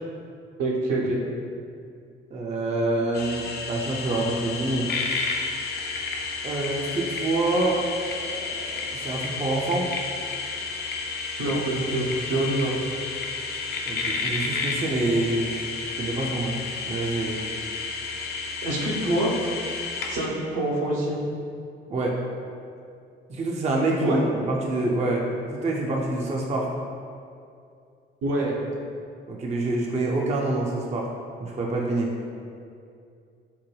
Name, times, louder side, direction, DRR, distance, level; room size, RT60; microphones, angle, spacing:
voice 1, 0.6-1.2 11.4-12.7 18.6-19.3 20.1-21.2 24.0-24.2 28.2-28.5, right 1 dB, 60° right, -4 dB, 0.8 m, -25 dB
voice 2, 2.3-4.9 6.4-7.8 8.2-9.9 13.9-15.7 16.0-16.6 16.9-17.4 21.9-22.2 23.3-26.7 29.3-31.1 31.4-32.1, right 2 dB, 25° right, -2 dB, 0.5 m, -26 dB
sound 1, 3.1-20.3, left 4 dB, 35° left, 0.5 m, -31 dB
5.4 x 2.2 x 3.0 m, 2.4 s
figure-of-eight pair, 40°, 29 cm